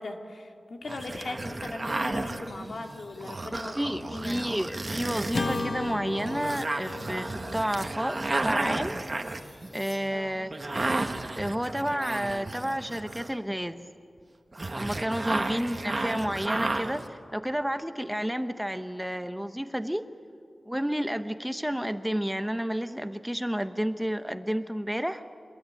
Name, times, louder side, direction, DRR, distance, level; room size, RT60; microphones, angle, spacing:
voice 1, 0.0-4.4 10.1-10.3 15.1-15.7, left 2 dB, 75° left, 4 dB, 2.3 m, -39 dB
sound 1, 0.9-13.5 14.5-17.1, right 2 dB, 40° right, 1.6 m, -33 dB
sound 2, 2.3-3.6 4.2-10.1 11.6-11.8, left 1 dB, 35° left, 6.7 m, -53 dB
voice 2, 3.5-9.0 9.7-10.6 11.3-13.8 14.7-20.1 20.7-25.2, equal, 5° right, 9 dB, 1.0 m, -31 dB
Acoustic guitar / Strum, 5.3-9.8, left 3 dB, 50° left, 1.4 m, -36 dB
25.5 x 21.0 x 9.2 m, 2.4 s
wide cardioid pair, 70°, 0 cm